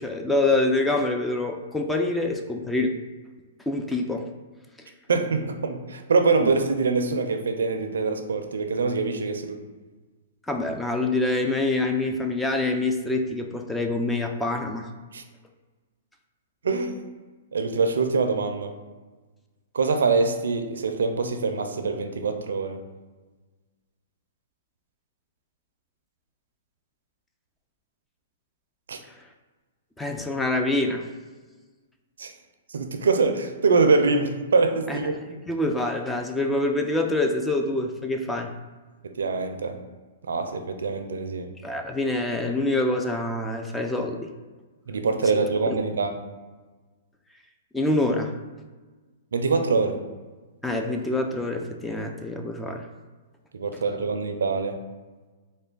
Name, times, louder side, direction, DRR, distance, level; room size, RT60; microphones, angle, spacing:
voice 1, 0.0-2.9 3.7-4.3 6.4-6.5 10.5-14.9 30.0-31.1 34.9-35.1 35.5-38.5 41.6-44.3 47.7-48.3 50.6-52.9, left 2 dB, 5° left, 3 dB, 0.3 m, -26 dB
voice 2, 5.1-9.6 15.1-15.2 16.6-17.0 17.5-18.7 19.7-22.8 28.9-29.0 32.2-32.3 32.7-35.2 39.0-39.8 40.2-41.5 44.9-46.1 49.3-50.0 53.5-54.8, right 4 dB, 85° right, 7 dB, 0.4 m, -24 dB
3.2 x 2.1 x 3.8 m, 1.3 s
hypercardioid pair, 135°, 0 cm